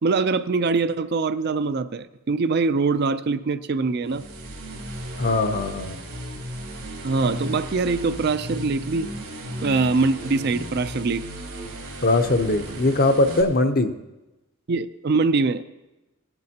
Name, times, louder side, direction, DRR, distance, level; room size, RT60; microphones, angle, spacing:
voice 1, 0.0-4.2 7.0-9.1 9.6-11.3 14.7-15.6, right 4 dB, 50° right, 12 dB, 0.4 m, -23 dB
sound 1, 4.0-13.4, right 1 dB, 85° right, 3.3 m, -35 dB
voice 2, 5.2-6.0 12.0-13.9, left 2 dB, 45° left, 8 dB, 0.7 m, -21 dB
18.0 x 10.5 x 2.9 m, 1.0 s
head